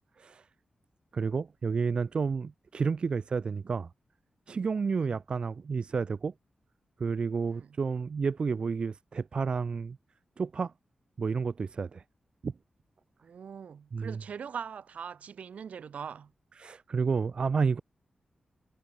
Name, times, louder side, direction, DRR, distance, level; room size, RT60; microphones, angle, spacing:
voice 1, 1.1-3.9 4.5-6.3 7.0-10.0 10.4-10.7 11.2-12.0 12.4-12.5 13.9-14.2 16.6-17.8, right 5 dB, 45° right, 0.4 m, -30 dB
voice 2, 13.2-16.3, right 7 dB, 85° right, 5.3 m, -42 dB
wide cardioid pair, 160°, 2 cm